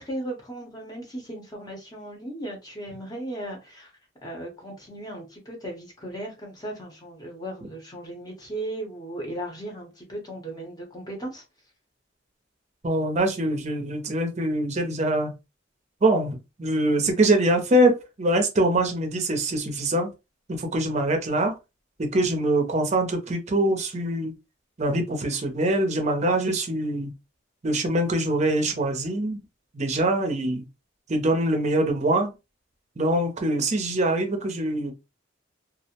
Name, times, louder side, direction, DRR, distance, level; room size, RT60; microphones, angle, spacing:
voice 1, 0.0-3.9 4.2-11.4, right 1 dB, 20° left, 0.7 m, -36 dB
voice 2, 12.8-15.3 16.0-20.1 20.5-21.5 22.0-24.3 24.8-27.1 27.6-29.4 29.7-30.6 31.1-32.3 33.0-34.9, right 1 dB, 35° right, 0.6 m, -24 dB
2.4 x 2.0 x 2.8 m
head